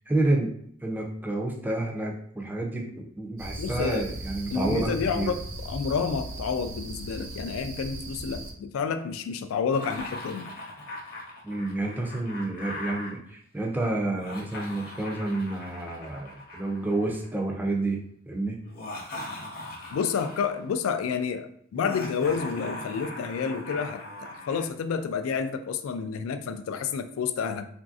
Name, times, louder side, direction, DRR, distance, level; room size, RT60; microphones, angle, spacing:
voice 1, 0.1-0.5 0.8-5.3 11.4-18.6, right 2 dB, 10° right, -1 dB, 0.4 m, -29 dB
sound 1, 3.4-8.5, right 1 dB, 65° right, 0.7 m, -38 dB
voice 2, 3.6-4.0 4.5-10.5 19.9-27.7, left 6 dB, 80° left, 10 dB, 0.3 m, -29 dB
Laughter, 9.7-13.1 14.1-17.4 18.6-20.6 21.7-24.7, left 1 dB, 50° left, 0.7 m, -39 dB
3.1 x 2.6 x 2.4 m, 0.65 s
head